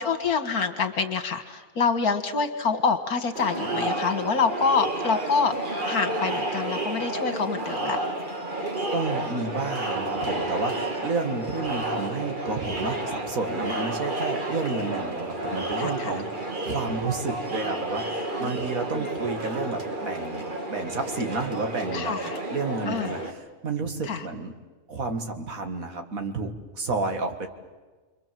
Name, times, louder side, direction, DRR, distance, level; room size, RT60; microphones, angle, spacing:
voice 1, 0.0-5.5 5.8-8.0 15.8-16.1 18.4-19.1 21.9-22.4 22.9-23.2 24.0-24.3, left 5 dB, 75° left, 7 dB, 2.2 m, -26 dB
Crowd, 3.4-23.3, right 2 dB, 30° right, 2.1 m, -31 dB
voice 2, 8.9-22.1 22.5-23.4 23.6-24.5 24.9-27.5, right 3 dB, 60° right, 5 dB, 2.3 m, -31 dB
29.5 x 23.0 x 7.7 m, 1.3 s
omnidirectional pair, 1.6 m